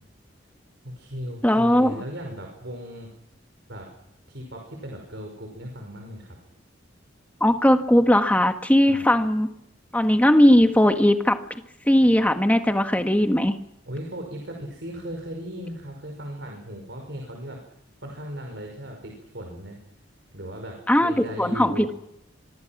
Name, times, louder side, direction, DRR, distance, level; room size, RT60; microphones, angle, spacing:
voice 1, 0.8-3.1 3.7-3.9 4.3-6.4 8.8-9.0 13.9-17.6 18.0-19.8 20.3-21.9, equal, 65° right, 2 dB, 5.6 m, -37 dB
voice 2, 1.4-1.9 7.4-9.5 9.9-11.4 11.9-13.6 20.9-22.0, left 1 dB, 10° left, 6 dB, 1.5 m, -19 dB
25.5 x 23.5 x 6.1 m, 0.78 s
head